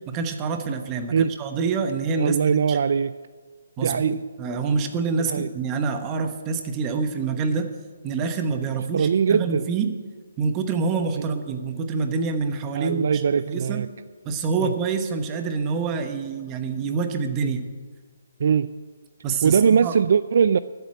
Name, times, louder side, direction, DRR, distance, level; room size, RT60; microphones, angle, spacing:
voice 1, 0.1-2.8 3.8-7.7 8.0-10.0 10.4-13.2 13.5-13.9 14.2-17.7 19.2-19.9, right 4 dB, 20° right, 7 dB, 1.1 m, -26 dB
voice 2, 2.2-3.1 3.8-4.2 5.3-5.5 8.9-9.7 11.1-11.3 12.7-13.9 14.6-14.7 18.4-18.7 19.4-20.6, right 6 dB, 55° right, 15 dB, 0.4 m, -21 dB
13.0 x 7.5 x 9.7 m, 1.5 s
hypercardioid pair, 165°, 0 cm